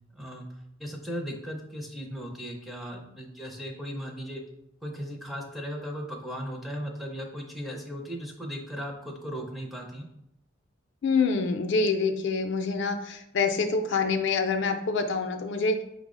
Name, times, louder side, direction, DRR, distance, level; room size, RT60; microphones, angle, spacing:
voice 1, 0.1-0.4 0.8-4.4 4.8-10.1, equal, ahead, 0 dB, 0.4 m, -37 dB
voice 2, 11.0-15.8, left 4 dB, 60° left, 6 dB, 0.4 m, -26 dB
5.3 x 2.0 x 3.6 m, 0.81 s
head